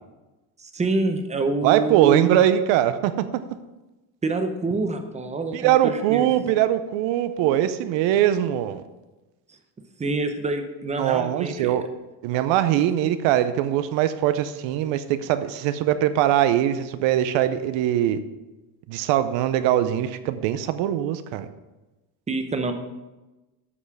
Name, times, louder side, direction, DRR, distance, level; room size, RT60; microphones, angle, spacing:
voice 1, 0.6-2.4 4.2-6.2 10.0-11.8 22.3-22.7, right 3 dB, 15° right, 7 dB, 0.8 m, -26 dB
voice 2, 1.6-3.4 5.5-8.8 11.0-11.9 12.2-18.2 18.9-21.5, right 11 dB, 65° right, 12 dB, 0.8 m, -22 dB
8.4 x 5.4 x 6.1 m, 1.1 s
cardioid pair, 125°, 49 cm